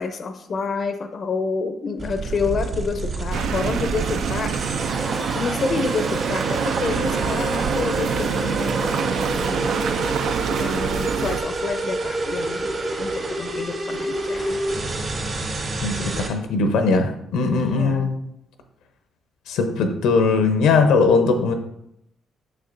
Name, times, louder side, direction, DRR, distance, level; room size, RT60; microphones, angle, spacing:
voice 1, 0.0-4.5 5.3-9.9 10.5-14.6 17.6-18.1, left 4 dB, 50° left, 8 dB, 0.5 m, -28 dB
sound 1, 2.0-16.3, right 2 dB, 45° right, 2.3 m, -28 dB
sound 2, 3.3-11.4, right 7 dB, 70° right, 0.4 m, -26 dB
voice 2, 15.8-18.2 19.5-21.5, left 4 dB, 90° left, 7 dB, 0.7 m, -19 dB
6.6 x 6.5 x 2.6 m, 0.78 s
cardioid pair, 90°, 0 cm